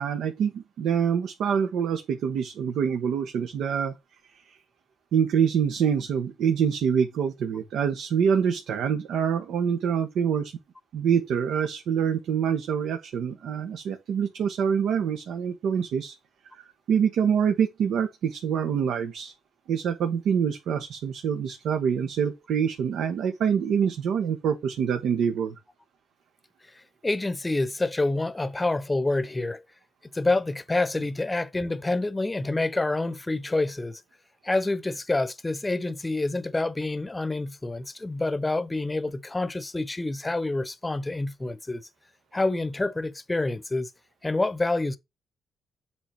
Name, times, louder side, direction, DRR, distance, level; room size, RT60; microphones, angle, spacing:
voice 1, 0.0-3.9 4.5-4.6 5.1-10.5 10.9-16.1 16.5-19.3 19.7-25.5, right 7 dB, 75° right, 1.3 m, -25 dB
voice 2, 27.0-29.6 30.1-34.0 34.4-41.8 42.3-43.9 44.2-45.0, left 2 dB, 15° left, 0.9 m, -27 dB
7.8 x 3.6 x 5.9 m
cardioid pair, 90°, 0 cm